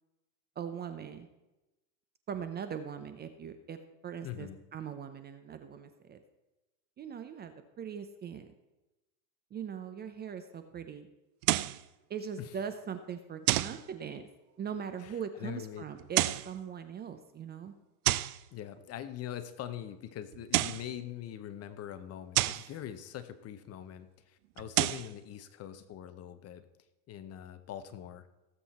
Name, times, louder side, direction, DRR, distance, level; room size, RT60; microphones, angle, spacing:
voice 1, 0.6-1.3 2.3-3.8 4.0-6.2 7.0-8.5 9.5-11.1 12.1-14.3 14.6-17.7, right 7 dB, 20° right, 9 dB, 0.6 m, -41 dB
voice 2, 4.2-4.6 12.4-12.5 15.0-15.8 18.5-26.6 27.1-28.3, left 10 dB, 30° left, 12 dB, 0.9 m, -43 dB
sound 1, 11.4-11.8 13.5-13.8 16.0-16.5 18.0-18.4 20.3-20.9 22.3-22.7 24.6-25.1, right 18 dB, 65° right, 0.6 m, -29 dB
18.0 x 7.7 x 4.2 m, 1.0 s
supercardioid pair, 120°, 48 cm